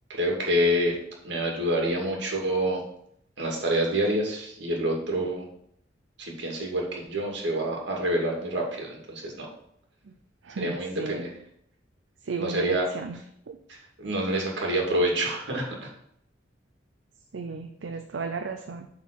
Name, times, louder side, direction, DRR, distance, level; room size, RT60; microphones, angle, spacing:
voice 1, 0.1-1.0 1.2-2.8 3.4-5.5 6.2-9.5 10.6-11.3 12.4-12.9 13.7-15.9, right 1 dB, 70° right, -1 dB, 2.1 m, -27 dB
voice 2, 10.4-11.2 12.2-13.2 13.5-13.6 17.3-18.9, right 4 dB, 85° right, 6 dB, 0.6 m, -34 dB
7.3 x 3.9 x 5.9 m, 0.70 s
head